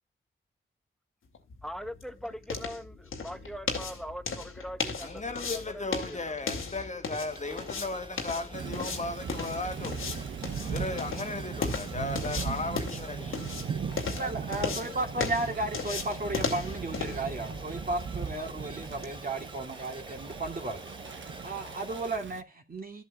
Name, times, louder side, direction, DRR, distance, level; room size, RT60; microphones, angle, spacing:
sound 1, 1.3-19.2, left 4 dB, 90° left, 2.4 m, -37 dB
voice 1, 1.6-6.3, equal, ahead, 1.0 m, -41 dB
voice 2, 5.0-13.4, left 2 dB, 35° left, 1.6 m, -36 dB
sound 2, 7.3-22.2, right 2 dB, 25° right, 1.2 m, -47 dB
Thunder / Rain, 8.5-22.4, right 7 dB, 70° right, 0.9 m, -39 dB
voice 3, 14.1-23.0, right 2 dB, 45° right, 2.5 m, -34 dB
13.5 x 8.0 x 2.3 m
wide cardioid pair, 75°, 21 cm